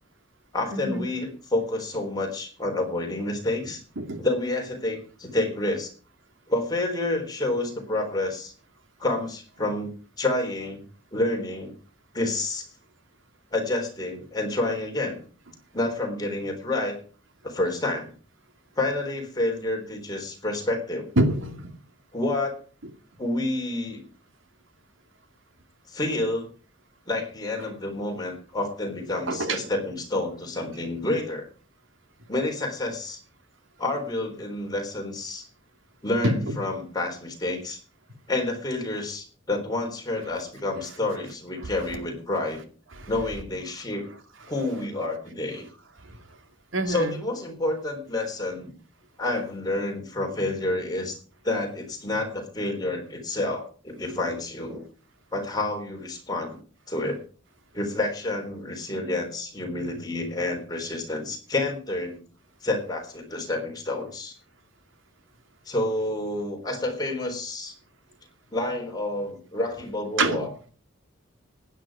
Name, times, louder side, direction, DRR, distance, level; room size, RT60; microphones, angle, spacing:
voice 1, 0.5-3.8 4.2-5.9 6.5-8.5 9.0-9.9 10.2-10.8 11.1-11.7 12.1-12.7 13.5-15.2 15.7-17.0 17.4-18.1 18.8-21.1 22.1-22.6 23.2-24.0 25.9-26.5 27.1-31.5 32.3-33.2 33.8-35.5 36.0-37.8 38.3-42.6 43.1-44.0 44.5-45.7 46.9-48.7 49.2-51.2 51.4-54.8 55.3-56.6 56.9-57.2 57.7-62.2 62.6-64.4 65.7-67.7 68.5-70.5, left 2 dB, 20° left, 2 dB, 3.9 m, -29 dB
voice 2, 21.2-21.6 29.3-29.6 36.2-36.3 46.7-47.1 70.2-70.4, right 2 dB, 80° right, 7 dB, 2.5 m, -24 dB
16.0 x 10.0 x 4.9 m, 0.40 s
head